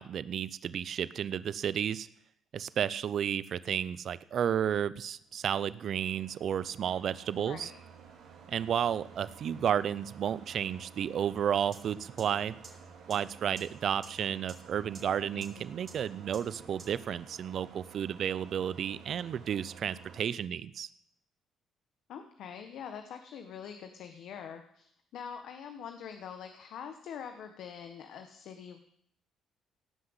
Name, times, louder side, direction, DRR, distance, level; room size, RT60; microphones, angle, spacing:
voice 1, 0.0-2.1 2.5-7.7 8.5-12.6 13.1-20.9, right 9 dB, 60° right, 17 dB, 0.6 m, -32 dB
sound 1, 5.2-20.2, right 6 dB, 80° right, 3.8 m, -53 dB
voice 2, 7.3-7.8 15.3-15.6 22.1-28.8, left 7 dB, 70° left, 6 dB, 1.2 m, -44 dB
sound 2, 11.7-11.8 12.2-12.3 12.6-12.7 13.1-13.2 13.6-13.7 14.0-14.1 14.5-14.6 14.9-15.0 15.4-15.5 15.9-16.0 16.3-16.4 16.8-16.9, right 5 dB, 40° right, 4.0 m, -47 dB
17.5 x 5.9 x 8.0 m, 0.68 s
cardioid pair, 90°, 0 cm